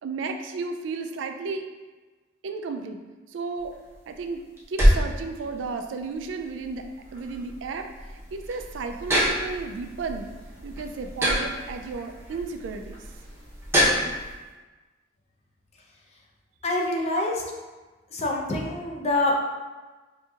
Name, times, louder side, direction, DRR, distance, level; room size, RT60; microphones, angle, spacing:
voice 1, 0.0-1.7 2.4-3.0 3.3-3.7 4.1-10.3 10.6-13.0, right 4 dB, 75° right, 6 dB, 0.3 m, -33 dB
sound 1, 3.6-14.3, equal, 15° right, 0.7 m, -27 dB
voice 2, 16.6-17.4 18.1-19.4, left 1 dB, 35° left, -1 dB, 0.5 m, -25 dB
5.0 x 2.7 x 2.4 m, 1.3 s
head